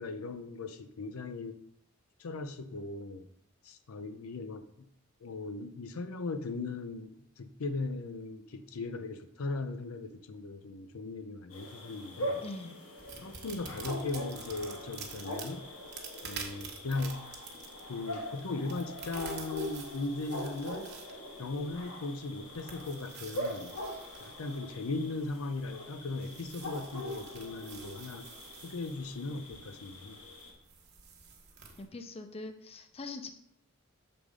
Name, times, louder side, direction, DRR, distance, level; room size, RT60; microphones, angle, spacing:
voice 1, 0.0-1.6 2.2-3.3 3.6-4.9 5.2-12.4 13.2-15.7 16.2-17.2 17.9-20.9 21.4-23.7 24.2-28.3 28.6-30.2, left 3 dB, 85° left, 9 dB, 0.6 m, -38 dB
sound 1, 11.5-30.5, equal, 70° left, 1.4 m, -42 dB
voice 2, 12.4-12.8 13.1-13.3 31.8-33.3, left 3 dB, 30° left, 6 dB, 0.5 m, -43 dB
sound 2, 13.0-31.8, right 6 dB, 50° right, 1.1 m, -49 dB
6.9 x 3.7 x 4.9 m, 0.73 s
head